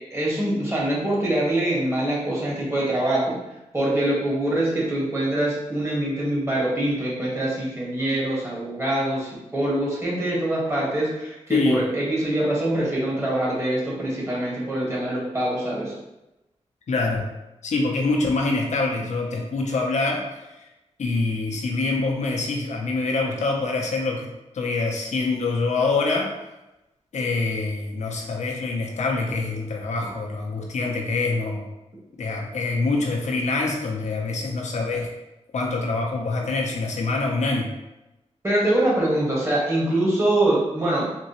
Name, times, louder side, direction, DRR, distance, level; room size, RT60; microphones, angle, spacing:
voice 1, 0.1-3.4 3.7-15.9 38.4-41.1, right 1 dB, 20° right, -5 dB, 1.4 m, -24 dB
voice 2, 11.5-11.8 16.9-17.3 17.6-20.5 21.0-26.3 27.1-31.7 32.2-35.1 35.5-37.7, left 3 dB, 75° left, 0 dB, 0.7 m, -25 dB
3.7 x 3.0 x 2.9 m, 0.98 s
cardioid pair, 70°, 12 cm